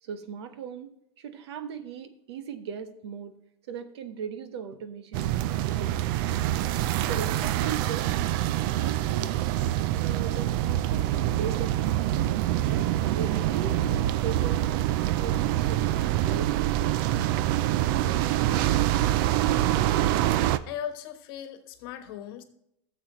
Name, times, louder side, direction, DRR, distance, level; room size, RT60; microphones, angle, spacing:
voice 1, 0.0-0.9 1.2-3.3 3.7-6.0 7.0-8.1 8.5-9.4 10.0-12.0 12.7-18.1, right 7 dB, 90° right, 10 dB, 1.2 m, -39 dB
sound 1, 5.1-20.6, right 13 dB, 55° right, 0.5 m, -25 dB
voice 2, 20.7-22.4, left 9 dB, 65° left, 9 dB, 1.3 m, -37 dB
13.5 x 7.4 x 3.1 m, 0.76 s
supercardioid pair, 145°, 13 cm